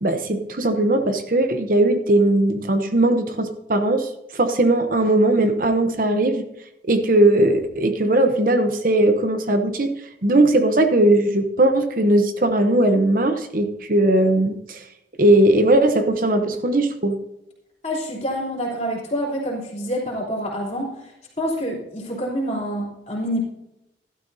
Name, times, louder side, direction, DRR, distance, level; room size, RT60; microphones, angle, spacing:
voice 1, 0.0-6.4 6.8-9.9 10.2-14.8 15.2-17.2, right 1 dB, 50° right, 7 dB, 0.9 m, -19 dB
voice 2, 17.8-23.4, equal, 35° left, -4 dB, 3.3 m, -27 dB
12.5 x 12.5 x 2.8 m, 0.85 s
head